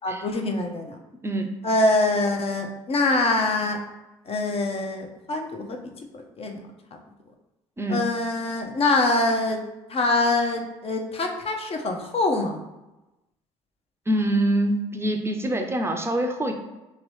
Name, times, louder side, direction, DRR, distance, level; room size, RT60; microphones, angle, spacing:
voice 1, 0.0-1.0 1.6-3.8 4.3-6.6 6.9-7.0 7.9-9.6 9.9-12.6, left 2 dB, 40° left, 3 dB, 0.7 m, -24 dB
voice 2, 1.2-1.5 7.8-8.1 14.1-16.5, right 1 dB, 15° right, 3 dB, 0.6 m, -25 dB
2.9 x 2.9 x 3.2 m, 1.0 s
hypercardioid pair, 60°, 15 cm